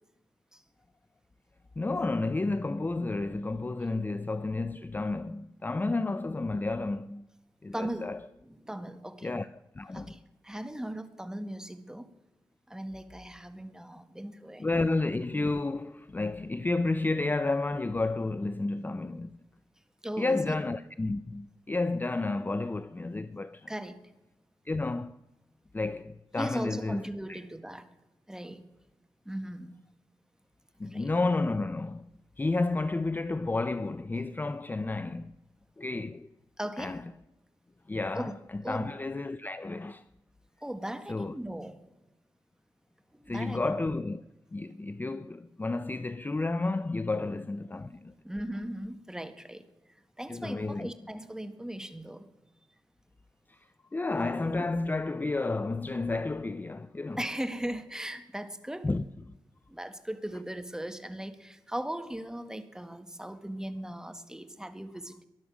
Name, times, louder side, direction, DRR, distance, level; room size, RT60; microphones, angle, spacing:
voice 1, 1.8-7.3 7.6-8.2 9.2-9.5 9.7-10.1 14.6-19.4 20.2-23.7 24.7-25.2 25.7-27.4 30.8-32.1 32.4-35.3 35.8-36.3 36.8-37.0 37.9-40.0 41.1-41.3 43.3-44.2 44.5-48.1 50.3-50.9 53.5-53.6 53.9-57.2 58.8-59.0, left 3 dB, 20° left, 0.5 m, -31 dB
voice 2, 7.7-8.1 8.4-9.3 9.9-12.1 12.7-14.7 20.0-20.6 23.7-24.0 26.4-27.9 28.3-28.6 29.2-29.8 30.8-31.1 36.6-37.0 38.1-38.4 38.6-38.9 40.6-41.8 43.1-43.8 47.1-47.3 48.2-49.7 50.2-52.2 57.2-58.9 59.7-65.2, right 1 dB, 5° right, 1.6 m, -38 dB
20.0 x 11.5 x 6.2 m
cardioid pair, 75°, 9 cm